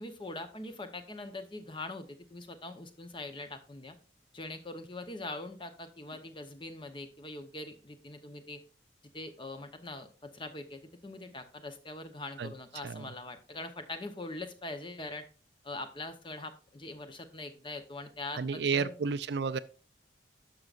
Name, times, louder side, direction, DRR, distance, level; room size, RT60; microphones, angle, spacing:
voice 1, 0.0-4.0 4.3-8.6 9.1-15.2 15.6-18.9, left 2 dB, 25° left, 0.8 m, -42 dB
voice 2, 18.3-19.6, right 5 dB, 65° right, 0.4 m, -31 dB
12.0 x 6.1 x 2.5 m
head